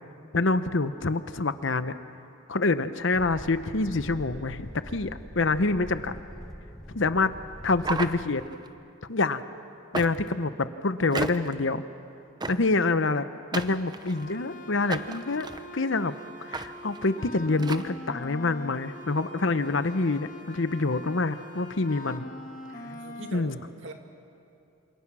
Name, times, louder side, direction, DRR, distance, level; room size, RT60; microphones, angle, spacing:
voice 1, 0.3-1.9 2.5-6.2 6.9-7.3 7.6-8.4 9.1-9.4 9.9-11.8 12.5-13.3 13.5-15.5 15.7-16.1 16.4-22.2 23.3-23.6, left 3 dB, 65° left, 12 dB, 0.9 m, -26 dB
sound 1, 3.1-8.2, equal, ahead, 1.4 m, -43 dB
sound 2, 7.8-8.7 9.9-10.4 11.1-11.6 12.4-12.8 13.5-14.4 14.9-15.6 16.5-16.7 16.9-17.1 17.6-17.9, right 3 dB, 20° right, 0.7 m, -34 dB
voice 2, 12.4-12.8 22.7-23.9, right 2 dB, 65° right, 4 dB, 2.4 m, -44 dB
sound 3, 14.0-23.3, left 1 dB, 40° left, 1.5 m, -43 dB
28.0 x 27.0 x 6.2 m, 2.6 s
head